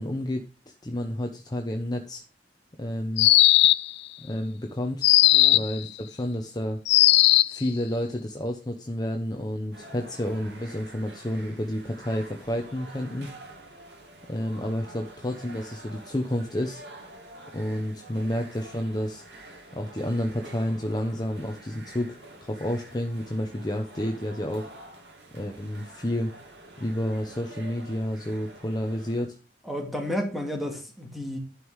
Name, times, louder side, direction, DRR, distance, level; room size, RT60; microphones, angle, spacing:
voice 1, 0.0-2.2 2.8-3.3 4.2-5.0 5.5-6.8 7.5-13.3 14.3-16.8 17.5-19.2 19.7-24.7 25.3-26.3 26.8-29.4, left 1 dB, 25° left, 0.9 m, -30 dB
sound 1, 3.2-4.0 5.0-5.8 6.9-7.6, left 16 dB, 70° left, 0.4 m, -17 dB
sound 2, 9.7-29.2, right 1 dB, 80° right, 2.6 m, -47 dB
voice 2, 29.6-31.4, left 1 dB, ahead, 2.3 m, -32 dB
11.5 x 5.6 x 4.8 m
head